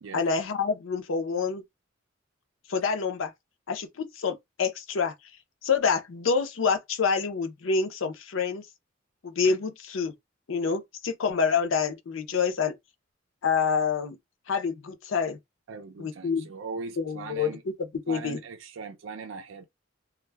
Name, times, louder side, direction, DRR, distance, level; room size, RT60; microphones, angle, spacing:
voice 1, 0.1-1.6 2.7-3.3 3.7-5.1 5.6-8.6 9.2-10.1 10.5-12.7 13.4-14.2 14.5-15.4 16.0-16.5 17.0-17.7 18.1-18.4, left 5 dB, 75° left, 0.5 m, -27 dB
voice 2, 15.7-17.6 18.1-19.7, right 4 dB, 75° right, 0.4 m, -39 dB
2.2 x 2.0 x 3.2 m
head